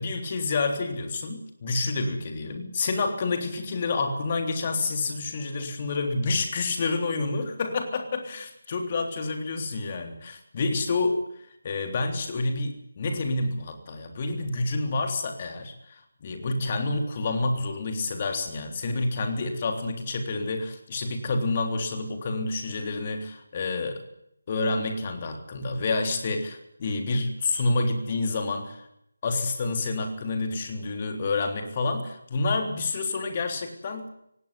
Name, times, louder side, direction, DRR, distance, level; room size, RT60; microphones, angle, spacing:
voice 1, 0.0-11.2 11.6-24.0 24.5-28.9 29.2-34.0, left 3 dB, 30° left, 5 dB, 3.5 m, -28 dB
18.0 x 17.5 x 9.8 m, 0.76 s
figure-of-eight pair, 155°, 0 cm